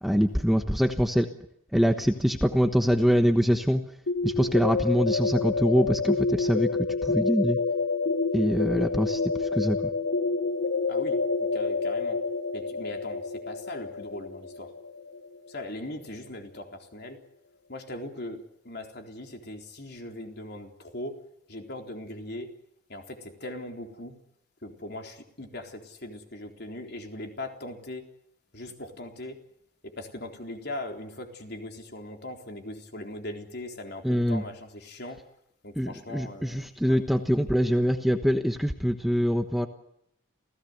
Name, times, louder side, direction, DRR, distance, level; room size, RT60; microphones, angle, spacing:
voice 1, 0.0-1.3 1.7-3.8 4.2-6.7 7.0-7.6 8.3-9.8 34.0-34.4 35.7-39.7, equal, ahead, 6 dB, 1.1 m, -24 dB
sound 1, 4.1-15.8, left 4 dB, 70° left, 1.2 m, -28 dB
voice 2, 11.5-12.2 12.5-14.7 15.5-17.2 17.7-21.2 21.5-22.5 22.9-24.2 24.6-28.0 28.5-29.4 30.0-35.2 35.6-37.0, left 1 dB, 50° left, 4 dB, 3.9 m, -39 dB
28.5 x 17.0 x 8.1 m, 0.76 s
head